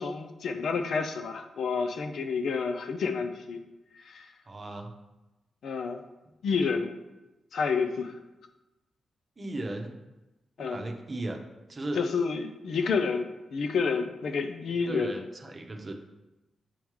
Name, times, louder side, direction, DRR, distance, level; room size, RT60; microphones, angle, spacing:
voice 1, 0.0-3.6 4.0-4.3 5.6-6.0 6.4-6.9 7.5-8.1 10.6-10.8 11.9-15.2, left 5 dB, 75° left, 7 dB, 0.5 m, -29 dB
voice 2, 4.5-4.9 9.4-9.9 10.6-11.4 11.7-12.1 14.9-16.1, right 2 dB, 35° right, 4 dB, 0.8 m, -36 dB
8.7 x 3.5 x 3.1 m, 1.0 s
cardioid pair, 70°, 0 cm